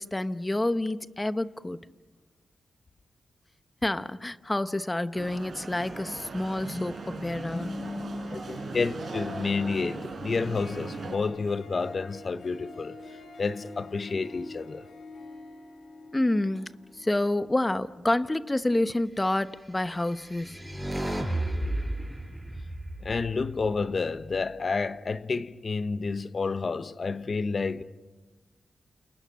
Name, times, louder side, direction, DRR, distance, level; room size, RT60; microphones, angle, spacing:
voice 1, 0.0-1.8 3.8-8.8 16.1-20.6, left 1 dB, 15° left, 1.0 m, -29 dB
sound 1, 5.1-11.2, right 4 dB, 65° right, 4.7 m, -39 dB
Harp, 5.7-19.5, left 2 dB, 70° left, 5.8 m, -47 dB
voice 2, 8.3-13.0 13.4-14.9 23.0-27.8, left 4 dB, 50° left, 1.0 m, -30 dB
sound 2, 19.8-24.1, right 1 dB, 5° right, 6.2 m, -33 dB
29.5 x 29.0 x 6.4 m
wide cardioid pair, 90°, 0 cm